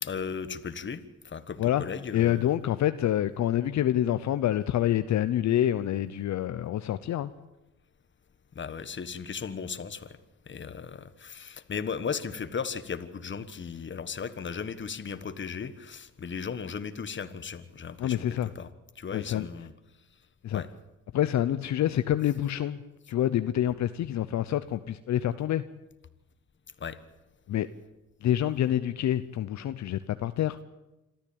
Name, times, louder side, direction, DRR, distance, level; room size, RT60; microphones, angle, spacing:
voice 1, 0.0-1.0 1.2-2.5 8.5-10.2 10.5-18.7 19.0-19.7 20.5-20.7 26.8-27.0, left 6 dB, 40° left, 1.5 m, -36 dB
voice 2, 2.1-7.3 18.0-18.5 19.1-19.5 20.4-20.6 21.1-22.8 23.1-25.6 27.5-27.7 28.2-30.6, left 12 dB, 65° left, 0.8 m, -27 dB
26.5 x 13.5 x 8.8 m
cardioid pair, 90°, 30 cm